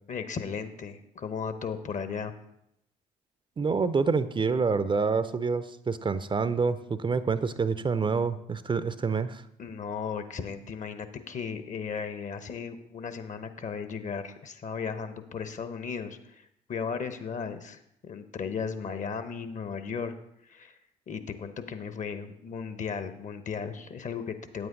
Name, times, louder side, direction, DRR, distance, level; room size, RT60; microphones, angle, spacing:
voice 1, 0.1-2.3 9.6-20.1 20.4-20.8 21.1-24.7, left 6 dB, 45° left, 10 dB, 1.0 m, -36 dB
voice 2, 3.6-9.4, right 5 dB, 30° right, 13 dB, 0.5 m, -27 dB
9.2 x 8.0 x 3.9 m, 0.78 s
hypercardioid pair, 50°, 18 cm